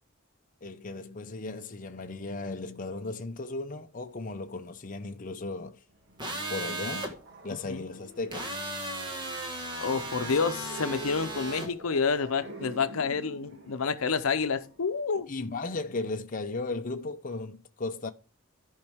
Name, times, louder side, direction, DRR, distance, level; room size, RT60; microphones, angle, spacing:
voice 1, 0.6-5.8 6.5-7.1 7.4-8.6 15.3-18.1, left 3 dB, 40° left, 0.6 m, -36 dB
sound 1, 5.9-15.6, right 2 dB, 55° right, 1.5 m, -48 dB
sound 2, 6.2-7.1 8.3-11.7, right 1 dB, 20° right, 1.6 m, -36 dB
voice 2, 9.8-15.3, left 5 dB, 85° left, 0.7 m, -29 dB
14.0 x 5.3 x 3.5 m
head